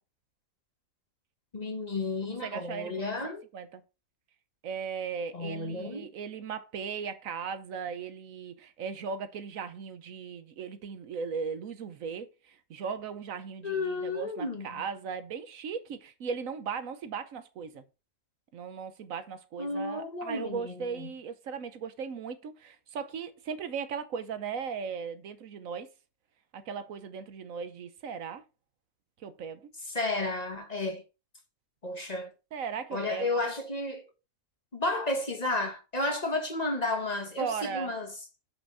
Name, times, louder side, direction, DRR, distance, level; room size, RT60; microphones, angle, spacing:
voice 1, 1.5-3.4 5.3-6.1 13.6-14.8 19.6-21.1 29.9-31.0 31.8-32.3 32.9-34.0 34.7-38.1, left 2 dB, 30° left, 1.3 m, -32 dB
voice 2, 2.4-3.8 4.6-17.8 18.5-25.9 26.5-28.4 29.2-29.7 32.5-33.3 37.4-37.9, right 6 dB, 75° right, 1.3 m, -37 dB
6.0 x 5.2 x 5.4 m
omnidirectional pair, 1.4 m